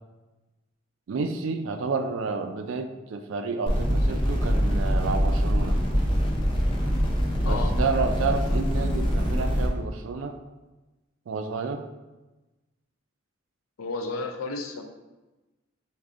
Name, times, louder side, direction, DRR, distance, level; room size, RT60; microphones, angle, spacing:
voice 1, 1.1-5.8 7.4-10.4 11.3-11.9, right 4 dB, 70° right, 8 dB, 0.3 m, -30 dB
sound 1, 3.7-9.7, equal, 25° left, 0.5 m, -24 dB
voice 2, 13.8-14.8, left 3 dB, 85° left, 5 dB, 0.5 m, -32 dB
4.8 x 2.6 x 2.5 m, 1.1 s
head